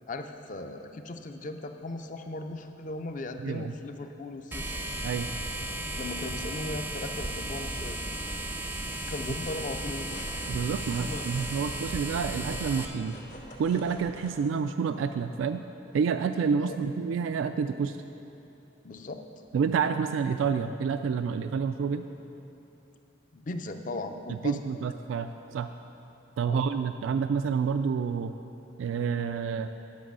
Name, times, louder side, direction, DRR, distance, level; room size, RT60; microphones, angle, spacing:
voice 1, 0.1-4.7 6.0-8.0 9.1-10.3 11.1-11.2 16.6-16.8 18.8-19.2 23.3-24.6 26.4-26.6, left 2 dB, 40° left, 7 dB, 0.5 m, -37 dB
voice 2, 3.4-3.7 5.0-5.3 10.5-13.2 13.6-15.6 15.9-18.0 19.5-22.1 24.3-25.7 26.4-28.3 28.8-29.7, right 6 dB, 85° right, 10 dB, 0.3 m, -28 dB
sound 1, 4.5-12.8, right 1 dB, 10° right, 0.5 m, -35 dB
sound 2, 9.1-14.3, equal, 90° left, 2.1 m, -47 dB
10.5 x 6.0 x 6.2 m, 2.9 s
head